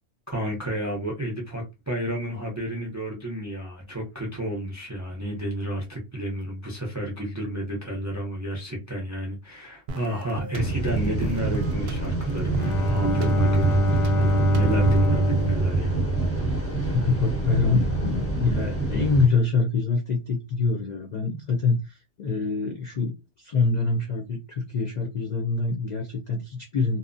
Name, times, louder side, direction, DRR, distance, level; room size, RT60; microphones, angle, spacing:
voice 1, 0.3-16.0, equal, 25° right, 0.3 m, -31 dB
sound 1, 9.9-15.2, right 4 dB, 60° right, 0.7 m, -37 dB
sound 2, 10.5-19.3, right 2 dB, 15° left, 0.8 m, -27 dB
Bowed string instrument, 12.5-17.0, right 1 dB, 80° left, 0.9 m, -24 dB
voice 2, 16.9-27.0, left 4 dB, 60° left, 0.4 m, -25 dB
2.7 x 2.0 x 2.5 m
omnidirectional pair, 1.3 m